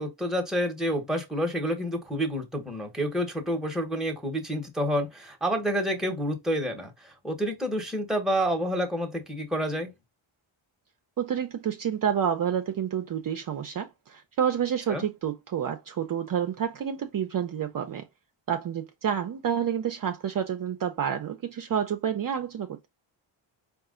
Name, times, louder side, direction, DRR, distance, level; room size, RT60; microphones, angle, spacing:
voice 1, 0.0-9.9 14.9-15.0, equal, ahead, 1.1 m, -29 dB
voice 2, 11.2-18.1 18.5-22.9, right 8 dB, 45° right, 0.6 m, -29 dB
4.6 x 2.4 x 3.7 m
cardioid pair, 115°, 48 cm